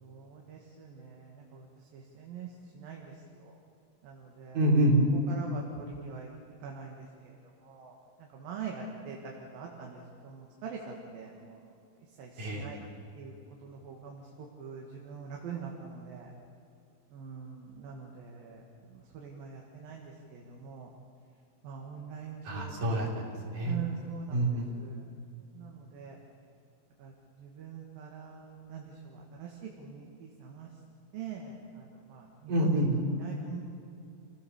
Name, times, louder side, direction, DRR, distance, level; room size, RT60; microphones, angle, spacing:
voice 1, 0.0-1.6 1.9-2.5 2.8-3.0 4.0-4.6 5.3-6.3 6.6-7.0 7.6-7.9 8.3-9.2 9.5-11.6 12.2-12.8 13.2-13.3 13.6-14.2 14.6-16.3 17.1-18.6 19.1-20.0 20.3-20.9 21.6-22.9 23.6-24.5 24.8-25.1 25.6-26.2 27.0-27.1 27.4-28.8 29.4-29.5 29.8-30.7 31.1-31.6 32.1-32.2 32.6-32.7 33.2-33.6, right 7 dB, 70° right, 0 dB, 3.5 m, -43 dB
voice 2, 4.5-5.0 12.4-12.7 22.5-23.8 24.3-24.7 32.5-32.9, right 1 dB, 55° right, -2 dB, 5.3 m, -27 dB
28.0 x 17.0 x 7.0 m, 2.6 s
omnidirectional pair, 4.4 m